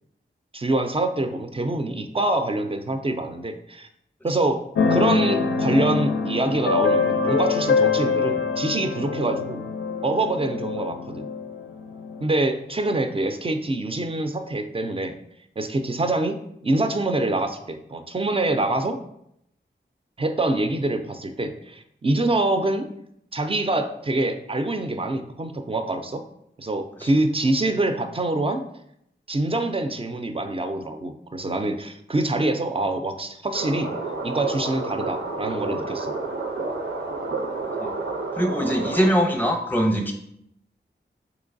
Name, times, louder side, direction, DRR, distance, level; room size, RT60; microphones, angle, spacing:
voice 1, 0.5-3.9 4.2-4.6 4.9-9.6 10.0-11.3 12.2-15.1 15.6-16.4 16.6-19.0 20.2-22.9 23.3-26.2 26.6-28.6 29.3-33.9 34.2-36.1, right 2 dB, 30° right, 7 dB, 0.4 m, -25 dB
Keyboard (musical), 4.7-12.2, left 5 dB, 80° left, 0.4 m, -24 dB
sound 1, 33.5-39.1, right 3 dB, 85° right, 0.6 m, -30 dB
voice 2, 38.4-40.1, equal, 10° left, 3 dB, 0.6 m, -22 dB
3.8 x 3.0 x 2.5 m, 0.74 s
wide cardioid pair, 50°, 20 cm